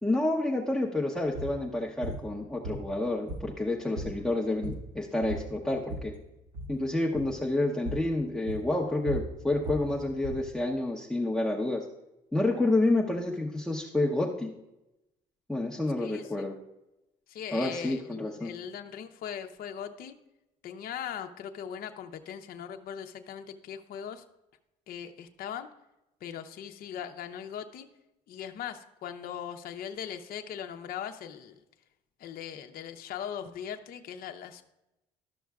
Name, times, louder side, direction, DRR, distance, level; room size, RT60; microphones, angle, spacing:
voice 1, 0.0-6.1 6.7-11.8 12.3-14.5 15.5-16.6 17.5-18.5, left 2 dB, ahead, -1 dB, 0.8 m, -29 dB
sound 1, 1.3-1.6 2.0-2.2 2.6-3.6 3.9-4.2 4.5-4.9 5.2-6.1 6.5-6.8 7.1-7.4 7.8-8.1 8.5-10.5, right 1 dB, 50° right, 1.5 m, -38 dB
voice 2, 16.0-16.5 17.3-20.1 20.6-24.2 24.9-25.7 26.2-27.9 28.3-31.6 32.2-34.6, left 9 dB, 60° left, 6 dB, 0.7 m, -40 dB
12.5 x 6.2 x 2.3 m, 0.91 s
cardioid pair, 110°, 17 cm